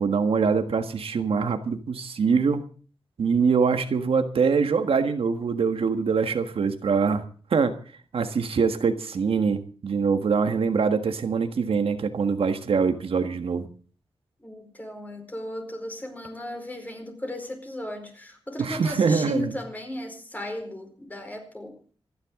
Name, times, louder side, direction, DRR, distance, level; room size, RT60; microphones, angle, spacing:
voice 1, 0.0-2.6 3.2-7.2 7.5-7.7 8.1-13.7 18.6-19.6, right 5 dB, 75° right, 7 dB, 1.5 m, -24 dB
voice 2, 14.4-21.8, left 1 dB, 15° left, 4 dB, 4.7 m, -35 dB
26.5 x 10.5 x 3.8 m, 0.41 s
wide cardioid pair, 120°, 10 cm